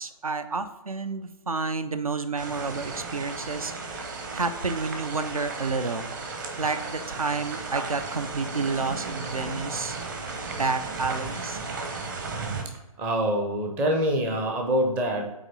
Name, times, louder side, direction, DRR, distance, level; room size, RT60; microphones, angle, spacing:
voice 1, 0.0-6.1 6.6-10.0 10.5-11.6, right 4 dB, 70° right, 11 dB, 0.7 m, -30 dB
sound 1, 2.4-12.6, right 4 dB, 35° right, 0.9 m, -35 dB
voice 2, 13.0-15.2, equal, 10° right, 2 dB, 0.5 m, -25 dB
8.6 x 3.1 x 4.2 m, 1.0 s
figure-of-eight pair, 140°, 19 cm